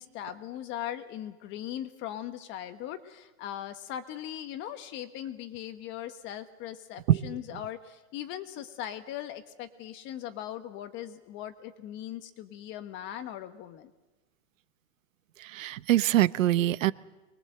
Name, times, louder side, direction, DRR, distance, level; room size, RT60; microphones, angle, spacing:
voice 1, 0.0-13.9, left 11 dB, 30° left, 10 dB, 1.2 m, -39 dB
voice 2, 15.4-16.9, right 14 dB, 70° right, 17 dB, 1.0 m, -24 dB
24.5 x 21.5 x 7.9 m, 1.1 s
supercardioid pair, 155°, 41 cm